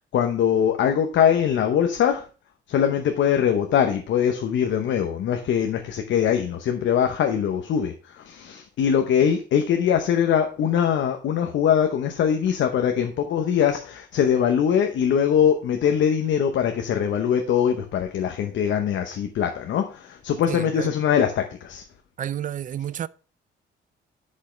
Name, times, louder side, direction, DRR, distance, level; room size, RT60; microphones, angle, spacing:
voice 1, 0.1-2.2 2.7-21.8, left 8 dB, 70° left, 0.9 m, -22 dB
voice 2, 20.5-20.9 22.2-23.1, right 10 dB, 40° right, 0.4 m, -30 dB
10.0 x 5.6 x 3.2 m
cardioid pair, 90°, 20 cm